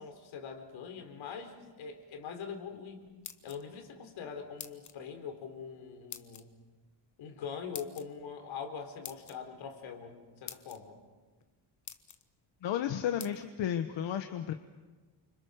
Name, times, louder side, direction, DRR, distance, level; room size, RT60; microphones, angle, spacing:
voice 1, 0.0-3.1 3.4-6.5 7.2-11.0, left 6 dB, 85° left, 6 dB, 4.1 m, -43 dB
sound 1, 3.0-3.9 4.6-5.0 6.1-6.4 7.7-8.1 9.0-9.4 10.1-10.2 10.5-10.8 11.4-11.5 11.9-12.2 13.2-13.3, left 8 dB, 40° left, 1.3 m, -45 dB
voice 2, 12.6-14.5, left 9 dB, 70° left, 7 dB, 1.3 m, -33 dB
29.0 x 26.0 x 6.5 m, 1.3 s
cardioid pair, 155°, 46 cm